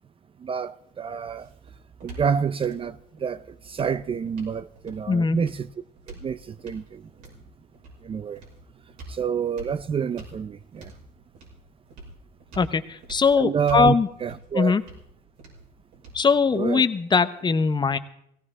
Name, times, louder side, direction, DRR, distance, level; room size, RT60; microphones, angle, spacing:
voice 1, 0.4-1.5 2.0-5.7 6.1-7.1 8.0-8.4 9.1-10.9 13.3-13.9 14.2-14.8 16.5-16.9, right 7 dB, 30° right, 0.5 m, -28 dB
sound 1, 0.9-17.0, right 2 dB, 90° right, 5.8 m, -47 dB
voice 2, 5.1-5.4 12.6-14.1 14.5-14.8 16.1-18.0, left 5 dB, 25° left, 0.8 m, -21 dB
17.0 x 17.0 x 3.7 m
cardioid pair, 110°, 17 cm